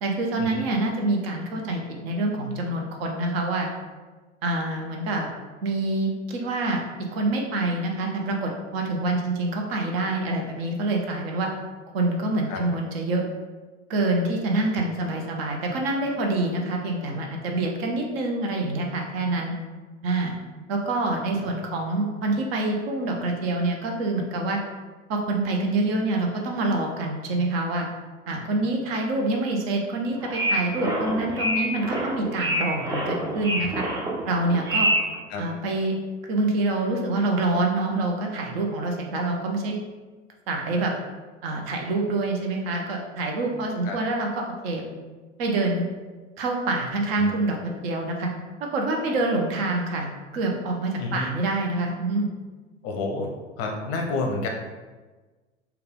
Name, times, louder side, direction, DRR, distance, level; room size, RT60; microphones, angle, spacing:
voice 1, 0.0-3.7 4.4-5.3 5.6-6.8 7.1-11.5 11.9-13.2 13.9-19.5 20.0-20.3 20.7-24.6 25.1-27.9 28.3-33.8 34.3-34.9 35.4-36.0 36.3-39.8 40.5-40.9 41.4-44.8 45.4-45.8 46.4-47.6 47.8-48.3 48.6-52.3, right 2 dB, 50° right, 1 dB, 0.8 m, -26 dB
sound 1, 30.1-35.2, right 1 dB, 10° right, 0.5 m, -26 dB
voice 2, 52.8-53.3 53.6-54.5, left 3 dB, 35° left, 2 dB, 0.6 m, -29 dB
3.2 x 2.3 x 3.6 m, 1.3 s
figure-of-eight pair, 85°, 37 cm